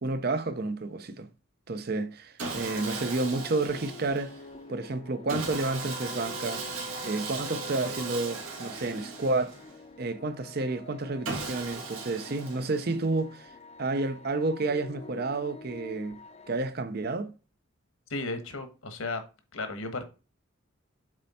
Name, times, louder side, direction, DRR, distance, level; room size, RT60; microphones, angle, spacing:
voice 1, 0.0-1.3 1.7-4.4 4.7-6.7 7.0-9.6 10.0-13.5 13.8-17.3, right 3 dB, 45° right, 0.6 m, -30 dB
Sawing, 2.4-4.4 5.3-9.8 11.2-13.1, right 3 dB, 80° right, 1.7 m, -37 dB
sound 1, 2.8-16.6, left 3 dB, 30° left, 0.5 m, -48 dB
voice 2, 18.1-19.2 19.5-20.0, left 3 dB, 75° left, 1.2 m, -34 dB
7.4 x 3.3 x 4.2 m
head